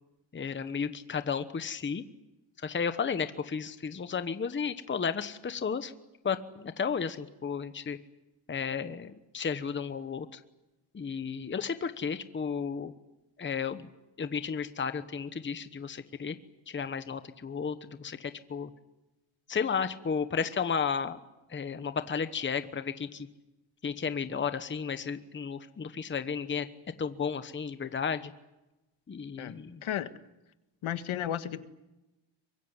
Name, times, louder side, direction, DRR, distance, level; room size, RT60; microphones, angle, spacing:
voice 1, 0.3-2.0 2.6-5.9 6.2-8.0 8.5-10.4 10.9-12.9 13.4-13.9 14.2-16.4 16.7-18.7 19.5-21.2 21.5-23.3 23.8-26.7 27.0-28.3 29.1-29.8, left 6 dB, 25° left, 11 dB, 1.1 m, -33 dB
voice 2, 29.4-30.1 30.8-31.6, left 11 dB, 70° left, 11 dB, 1.7 m, -34 dB
24.0 x 22.5 x 9.8 m, 0.99 s
cardioid pair, 155°, 50 cm